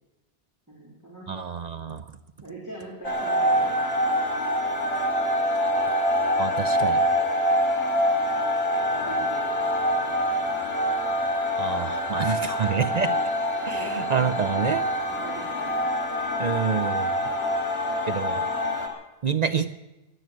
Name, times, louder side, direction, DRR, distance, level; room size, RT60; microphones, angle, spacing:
voice 1, 0.7-1.3 2.4-4.0 8.8-10.3 12.5-13.0 13.7-14.1 15.2-15.9, right 1 dB, 15° right, -5 dB, 3.4 m, -43 dB
voice 2, 1.3-2.0 6.4-7.0 11.6-13.1 13.7-14.8 16.4-17.1 18.1-18.5 19.2-19.7, right 6 dB, 50° right, 9 dB, 0.6 m, -27 dB
sound 1, 3.0-18.9, equal, 75° left, 3.1 m, -25 dB
16.0 x 11.0 x 7.6 m, 1.0 s
omnidirectional pair, 1.1 m